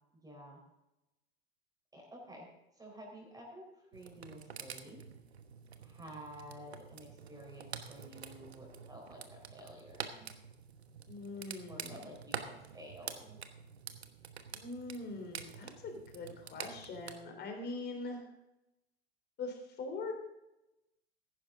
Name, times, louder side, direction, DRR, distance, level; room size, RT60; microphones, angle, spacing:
voice 1, 0.1-0.6 1.9-2.5 2.8-5.0 5.8-10.3 11.7-13.4, equal, 10° right, -1 dB, 4.0 m, -51 dB
sound 1, 3.9-17.1, right 7 dB, 80° right, 1.2 m, -47 dB
voice 2, 11.1-12.1 14.5-18.3 19.4-20.1, left 3 dB, 30° left, 3 dB, 3.6 m, -42 dB
14.5 x 11.0 x 3.7 m, 0.93 s
figure-of-eight pair, 90°, 32 cm